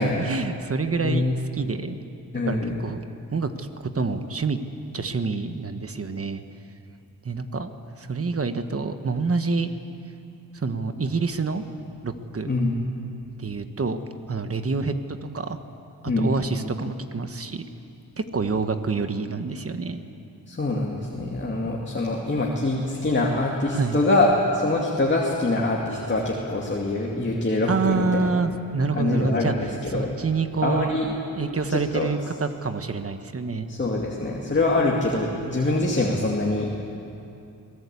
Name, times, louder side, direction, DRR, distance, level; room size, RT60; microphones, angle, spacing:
voice 1, 0.0-1.2 1.5-2.0 2.5-3.0 3.3-3.7 3.9-4.6 4.9-6.4 7.2-7.7 8.0-9.7 10.5-11.6 12.0-12.5 13.4-14.0 14.3-14.9 15.3-15.6 16.0-17.6 18.2-20.0 23.7-24.0 27.7-29.5 29.9-33.7, right 4 dB, 40° right, 8 dB, 1.3 m, -27 dB
voice 2, 1.0-1.3 2.3-2.8 12.4-12.8 16.1-16.4 20.5-24.3 24.5-28.3 29.0-30.1 30.6-31.1 31.7-32.1 33.7-36.9, left 2 dB, 30° left, -3 dB, 2.5 m, -24 dB
26.0 x 18.0 x 8.4 m, 2.6 s
wide cardioid pair, 105°, 36 cm